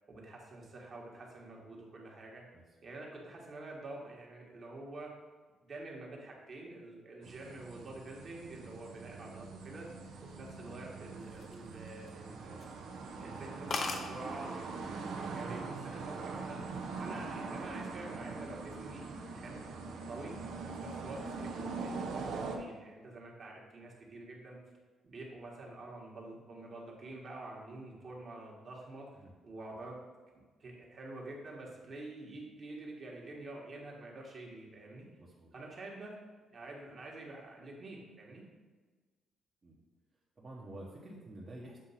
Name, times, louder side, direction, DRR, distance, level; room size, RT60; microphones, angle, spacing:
voice 1, 0.1-2.5 2.8-5.1 5.6-9.9 10.2-12.7 13.2-16.6 17.0-19.0 19.3-20.4 20.7-24.6 25.0-30.0 30.6-35.1 35.5-36.1 36.5-38.4, right 2 dB, 45° right, -2 dB, 1.5 m, -47 dB
sound 1, 7.2-22.6, right 4 dB, 80° right, 0.7 m, -42 dB
sound 2, 11.2-12.2 12.6-12.8 13.2-13.3 13.4-13.5 13.7-14.1 15.0-15.3 15.6-16.1, left 3 dB, 50° left, 0.7 m, -37 dB
voice 2, 35.2-35.5 39.6-39.8 40.4-41.8, right 1 dB, 30° right, -5 dB, 1.0 m, -49 dB
7.4 x 2.6 x 5.7 m, 1.4 s
cardioid pair, 90°, 0 cm